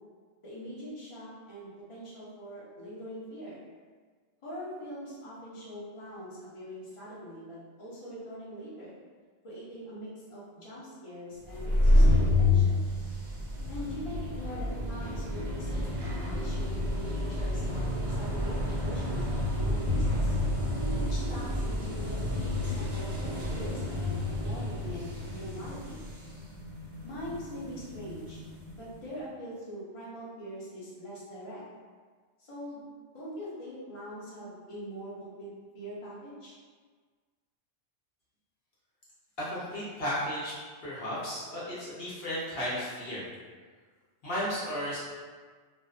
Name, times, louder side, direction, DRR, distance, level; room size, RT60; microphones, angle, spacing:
voice 1, 0.4-3.6 4.4-9.0 9.4-12.9 13.7-15.7 16.0-20.4 21.0-24.1 24.4-26.0 27.0-28.4 28.7-31.6 32.4-32.8 33.1-35.5 35.7-36.6, equal, 35° left, -9 dB, 0.7 m, -43 dB
sound 1, 11.5-28.9, left 1 dB, 65° right, 0.3 m, -29 dB
voice 2, 39.4-40.5 40.8-43.3 44.2-45.0, equal, 65° left, -9 dB, 0.8 m, -34 dB
2.5 x 2.2 x 2.4 m, 1.5 s
omnidirectional pair, 1.2 m